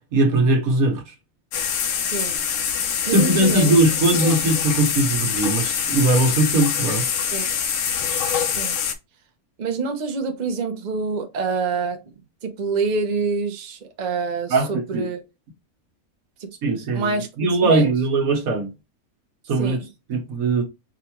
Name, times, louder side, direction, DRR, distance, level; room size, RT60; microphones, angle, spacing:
voice 1, 0.1-1.0 3.1-7.0 14.5-15.1 16.6-18.7 19.5-19.8 20.1-20.6, right 2 dB, 75° right, 1.5 m, -20 dB
sound 1, 1.5-8.9, left 7 dB, 65° left, 1.0 m, -24 dB
voice 2, 2.0-2.4 3.1-3.7 4.1-4.3 7.3-7.5 8.2-8.8 9.6-12.0 12.4-15.2 16.9-17.3 17.6-17.9 19.6-19.9, right 4 dB, 40° right, 0.7 m, -26 dB
4.9 x 2.3 x 2.9 m
omnidirectional pair, 1.5 m